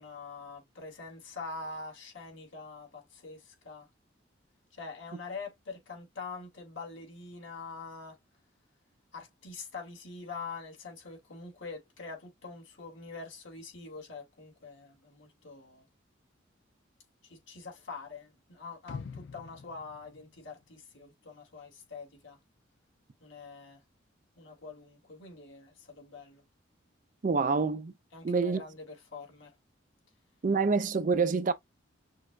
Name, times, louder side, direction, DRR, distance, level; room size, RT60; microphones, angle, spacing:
voice 1, 0.0-3.9 4.7-8.2 9.1-15.9 17.2-22.4 23.2-23.8 24.4-26.4 28.1-29.5, left 4 dB, 80° left, 2.6 m, -44 dB
sound 1, 18.9-21.0 21.4-21.5, left 5 dB, 65° left, 0.4 m, -45 dB
voice 2, 27.2-27.9 28.2-28.6 30.4-31.5, right 4 dB, 40° right, 0.4 m, -26 dB
6.3 x 2.3 x 2.4 m
head